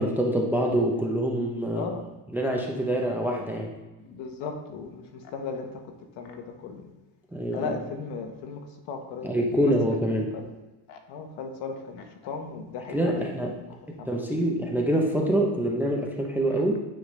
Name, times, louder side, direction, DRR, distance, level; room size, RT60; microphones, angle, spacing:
voice 1, 0.0-1.9 2.3-3.7 7.3-7.7 9.2-10.3 12.9-13.5 13.9-16.9, right 1 dB, 5° right, 0 dB, 0.5 m, -25 dB
voice 2, 1.7-2.0 4.0-5.8 6.2-6.9 7.5-8.6 8.9-10.1 10.3-10.5 10.9-14.5, left 4 dB, 65° left, 4 dB, 1.2 m, -37 dB
8.9 x 3.7 x 3.1 m, 1.1 s
cardioid pair, 140°, 44 cm